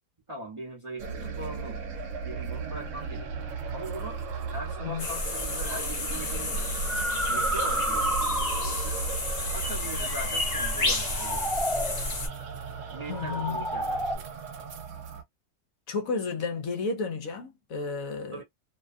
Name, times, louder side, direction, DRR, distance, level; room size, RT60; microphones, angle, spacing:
voice 1, 0.3-1.8 2.2-4.2 4.5-6.7 7.3-9.0 9.5-11.9 12.9-14.2 18.3-18.4, right 2 dB, 25° right, 0.8 m, -41 dB
sound 1, 1.0-15.2, right 5 dB, 60° right, 1.0 m, -37 dB
sound 2, 5.0-12.3, left 2 dB, 45° left, 1.0 m, -31 dB
sound 3, 5.7-5.9 6.7-9.0 10.9-12.1 13.0-14.2, right 1 dB, ahead, 0.5 m, -30 dB
voice 2, 13.1-13.7 15.9-18.4, left 4 dB, 65° left, 1.1 m, -32 dB
2.7 x 2.3 x 2.5 m
omnidirectional pair, 1.6 m